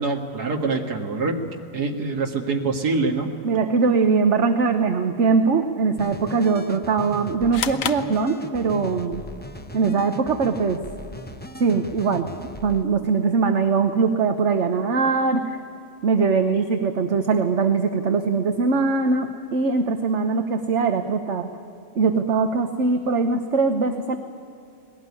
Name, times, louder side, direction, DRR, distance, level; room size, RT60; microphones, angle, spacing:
voice 1, 0.0-1.4 1.7-3.3, right 3 dB, 85° right, 1 dB, 2.3 m, -25 dB
voice 2, 3.4-9.2 9.7-10.8 11.6-12.3 12.6-15.6 16.0-21.5 22.0-24.2, right 4 dB, 50° right, 6 dB, 1.2 m, -21 dB
sound 1, 6.0-12.8, left 1 dB, 10° left, 0.6 m, -38 dB
sound 2, 7.5-8.9, left 9 dB, 65° left, 1.1 m, -31 dB
20.5 x 18.0 x 9.7 m, 2.5 s
omnidirectional pair, 1.6 m